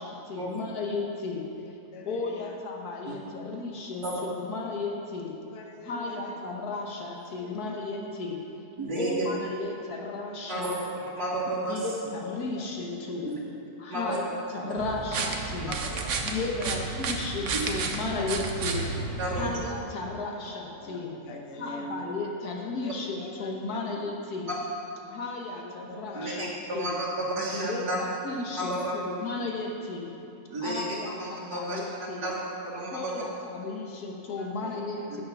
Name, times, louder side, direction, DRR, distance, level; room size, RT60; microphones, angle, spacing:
voice 1, 0.0-1.4 2.0-5.3 5.8-8.4 8.9-10.7 11.7-13.3 13.8-15.7 16.2-18.8 19.3-21.1 21.5-24.5 25.1-26.5 26.7-26.9 27.5-30.1 30.6-32.3 32.9-35.2, left 3 dB, 75° left, 0 dB, 1.7 m, -34 dB
voice 2, 1.9-2.5 5.5-6.3 7.4-7.9 12.4-12.6 13.2-13.5 15.8-17.2 19.3-19.5 20.8-22.1 22.8-23.8 25.6-26.7 28.9-29.0 31.5-32.0 34.4-34.8, left 2 dB, 45° left, 2 dB, 1.1 m, -44 dB
voice 3, 8.8-9.2 10.5-10.8 11.2-11.9 13.2-13.4 13.9-14.2 15.7-15.8 17.5-17.6 19.2-19.5 26.2-28.0 28.6-28.9 30.5-31.0 31.5-31.8 32.2-32.4 32.6-33.1, right 1 dB, 85° right, -7 dB, 2.1 m, -31 dB
sound 1, 14.8-19.7, right 4 dB, 55° right, 1.1 m, -32 dB
8.4 x 8.3 x 5.9 m, 2.8 s
omnidirectional pair, 1.7 m